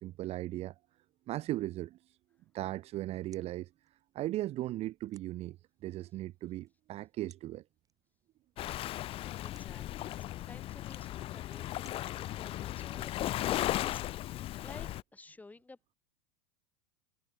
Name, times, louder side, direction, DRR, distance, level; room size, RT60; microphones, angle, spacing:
voice 1, 0.0-0.7 1.3-2.0 2.5-3.7 4.1-5.6 5.8-7.6, right 15 dB, 35° right, 0.6 m, -37 dB
sound 1, 2.6-15.4, right 6 dB, 20° right, 6.1 m, -70 dB
Waves surf, 8.6-15.0, left 14 dB, 35° left, 0.5 m, -36 dB
voice 2, 9.4-15.9, left 3 dB, 10° left, 1.6 m, -55 dB
hypercardioid pair, 115°, 17 cm